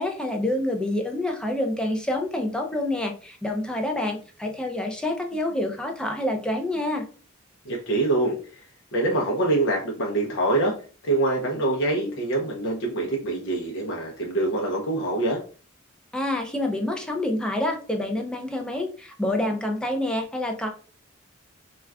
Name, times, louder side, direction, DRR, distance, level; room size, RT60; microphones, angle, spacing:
voice 1, 0.0-7.0 16.1-20.7, left 1 dB, 5° left, 2 dB, 0.4 m, -27 dB
voice 2, 7.6-8.3 8.9-10.7 11.0-15.4, right 2 dB, 65° left, -1 dB, 0.6 m, -24 dB
2.3 x 2.3 x 3.3 m, 0.38 s
head